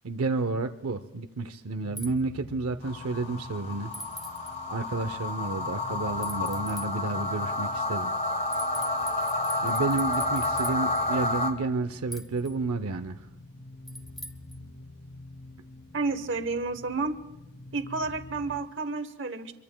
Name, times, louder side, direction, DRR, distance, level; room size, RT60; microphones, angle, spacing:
voice 1, 0.0-3.9 4.7-8.1 9.6-13.2, right 3 dB, 90° right, 9 dB, 0.6 m, -31 dB
sound 1, 1.7-18.7, left 2 dB, 50° left, 0.9 m, -47 dB
sound 2, 2.0-2.1 3.9-4.5 6.2-6.9 8.5-11.0 12.1-12.5 13.9-14.6, equal, ahead, 1.2 m, -42 dB
sound 3, 2.8-11.5, left 2 dB, 30° left, 1.5 m, -30 dB
voice 2, 15.9-17.2 17.7-19.5, right 3 dB, 55° right, 10 dB, 1.0 m, -30 dB
26.5 x 23.0 x 2.2 m, 0.98 s
head